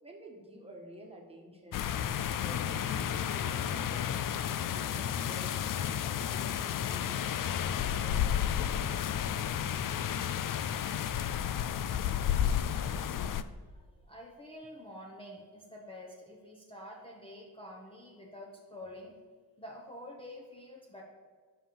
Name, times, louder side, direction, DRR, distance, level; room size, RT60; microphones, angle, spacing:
voice 1, 0.0-1.9 2.4-5.6 6.0-8.8, right 1 dB, 15° right, 0 dB, 1.5 m, -51 dB
sound 1, 1.7-13.4, left 9 dB, 55° left, 0.5 m, -32 dB
voice 2, 13.5-19.2 19.6-21.0, left 1 dB, 15° left, -1 dB, 1.0 m, -48 dB
11.5 x 5.6 x 7.0 m, 1.5 s
wide cardioid pair, 175°, 39 cm